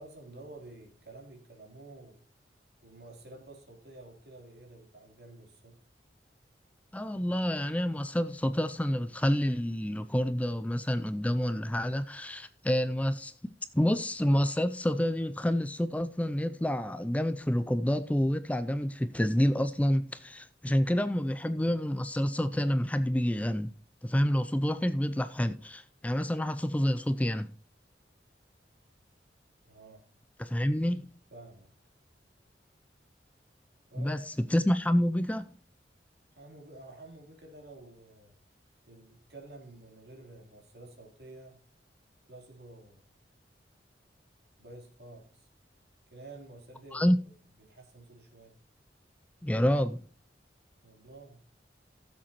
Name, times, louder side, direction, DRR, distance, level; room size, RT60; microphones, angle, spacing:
voice 1, 0.0-2.2 2.8-5.8 29.7-30.0 31.3-31.7 33.9-34.4 36.3-38.4 38.9-41.6 42.3-43.0 44.6-45.5 46.1-47.1 47.7-48.6 50.8-51.4, right 2 dB, 65° right, 3.5 m, -50 dB
voice 2, 6.9-13.3 13.7-23.7 24.0-27.5 30.4-31.1 34.0-35.5 46.9-47.2 49.4-50.1, equal, 10° left, 0.4 m, -28 dB
15.5 x 7.5 x 3.0 m
head